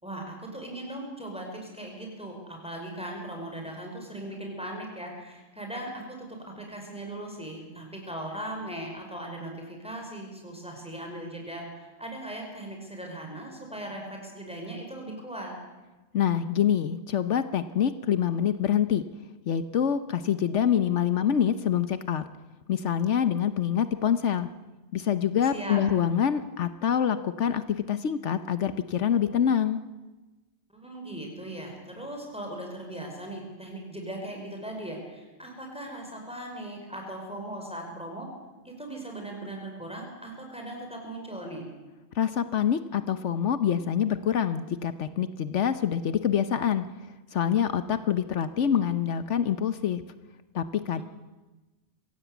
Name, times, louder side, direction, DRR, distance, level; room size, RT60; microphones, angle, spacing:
voice 1, 0.0-6.3 6.6-15.5 25.5-25.8 30.7-38.3 38.6-41.7 51.0-51.1, right 1 dB, 5° right, 1 dB, 5.7 m, -39 dB
voice 2, 16.1-19.0 19.5-22.2 22.7-24.5 24.9-29.8 42.1-46.8 47.3-50.0 50.5-51.0, left 9 dB, 75° left, 12 dB, 1.2 m, -26 dB
24.5 x 16.5 x 8.2 m, 1.2 s
omnidirectional pair, 1.2 m